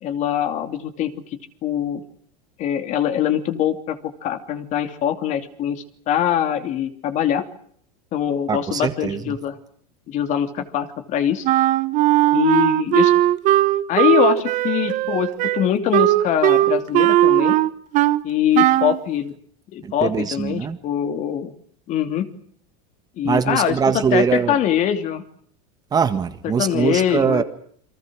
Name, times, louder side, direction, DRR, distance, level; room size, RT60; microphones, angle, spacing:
voice 1, 0.0-2.0 2.6-7.5 8.1-9.5 10.1-11.5 12.3-13.1 13.9-17.6 18.2-19.3 19.7-21.5 21.9-22.3 23.2-23.8 24.1-25.2 26.6-27.4, left 10 dB, 40° left, 8 dB, 2.9 m, -23 dB
voice 2, 8.5-9.4 19.8-20.8 23.2-24.6 25.9-27.4, right 6 dB, 20° right, 9 dB, 1.8 m, -22 dB
Wind instrument woodwind instrument, 11.4-18.2 18.5-19.0, right 15 dB, 40° right, 1.2 m, -18 dB
29.0 x 24.0 x 6.4 m, 0.62 s
supercardioid pair, 145°, 19 cm